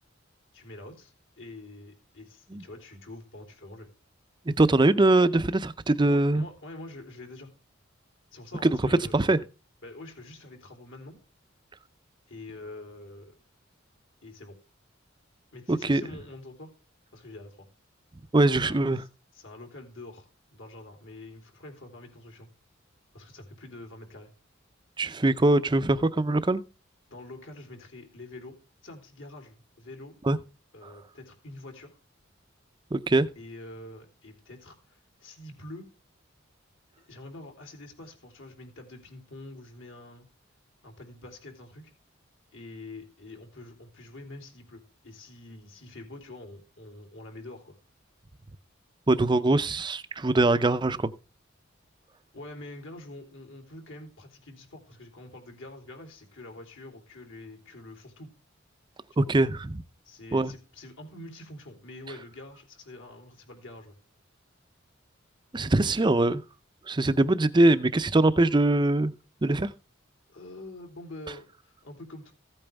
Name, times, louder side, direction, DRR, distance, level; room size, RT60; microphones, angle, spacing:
voice 1, 0.5-3.9 6.0-7.5 8.3-9.4 9.8-11.2 12.3-13.3 14.2-14.6 15.5-16.7 17.1-17.7 18.6-22.5 23.1-24.3 27.1-28.6 28.8-30.1 30.7-31.9 33.3-35.9 37.0-40.3 40.8-41.9 42.5-47.8 52.3-58.3 59.1-59.3 60.0-63.9 67.1-67.4 70.3-72.3, left 2 dB, 70° left, 3.4 m, -46 dB
voice 2, 4.6-6.4 8.6-8.8 9.1-9.4 15.7-16.0 18.3-19.0 25.0-26.6 30.3-30.4 32.9-33.3 49.1-51.1 59.2-59.8 60.3-60.5 65.5-66.4 66.9-69.1 69.4-69.7, right 2 dB, 25° right, 0.5 m, -22 dB
15.5 x 8.8 x 3.5 m
head